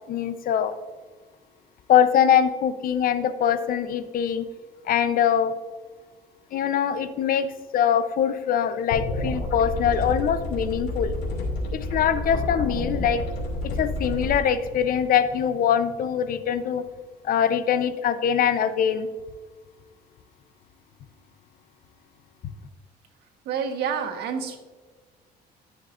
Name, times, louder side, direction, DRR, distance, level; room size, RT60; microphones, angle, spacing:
voice 1, 0.1-0.7 1.9-4.4 4.8-5.5 6.5-7.5 7.7-11.1 11.7-13.2 13.8-16.8 17.2-19.1, left 8 dB, 60° left, 11 dB, 0.7 m, -23 dB
sound 1, 8.9-14.3, left 1 dB, 80° left, 2.5 m, -29 dB
voice 2, 23.4-24.6, right 7 dB, 75° right, 5 dB, 1.3 m, -28 dB
13.0 x 6.4 x 2.6 m, 1.4 s
cardioid pair, 110°, 17 cm